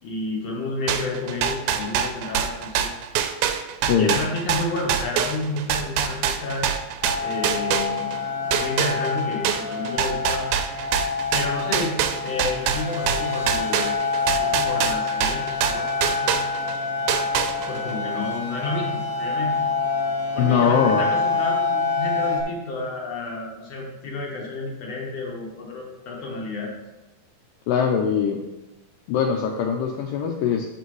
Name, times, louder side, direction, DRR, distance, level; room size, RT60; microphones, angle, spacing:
voice 1, 0.0-2.9 3.9-6.8 7.2-8.1 8.5-10.4 11.3-16.4 17.7-19.6 20.3-26.7, left 2 dB, 65° left, -2 dB, 1.6 m, -30 dB
sound 1, 0.9-8.2 8.5-16.8 17.1-17.9, right 9 dB, 80° right, 2.4 m, -25 dB
voice 2, 3.9-4.2 20.4-21.1 27.7-28.4 29.1-30.7, left 7 dB, 80° left, 2 dB, 1.9 m, -21 dB
sound 2, 7.0-22.4, left 4 dB, 45° left, 1.4 m, -27 dB
9.1 x 6.8 x 3.1 m, 1.0 s
omnidirectional pair, 4.5 m